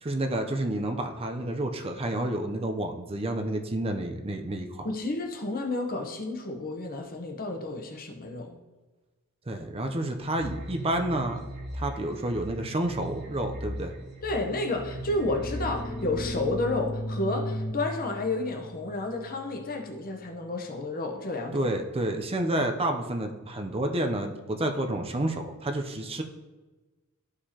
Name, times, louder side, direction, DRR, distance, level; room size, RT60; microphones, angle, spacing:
voice 1, 0.0-4.9 9.5-11.4 11.7-13.9 21.5-26.2, right 1 dB, 25° right, 5 dB, 0.6 m, -30 dB
voice 2, 4.8-8.6 14.2-21.7, left 2 dB, 40° left, 3 dB, 0.9 m, -31 dB
sound 1, 10.2-16.3, right 1 dB, 50° right, 1.6 m, -39 dB
sound 2, 14.8-20.3, equal, 20° left, 0.6 m, -37 dB
13.0 x 4.9 x 2.9 m, 1.2 s
head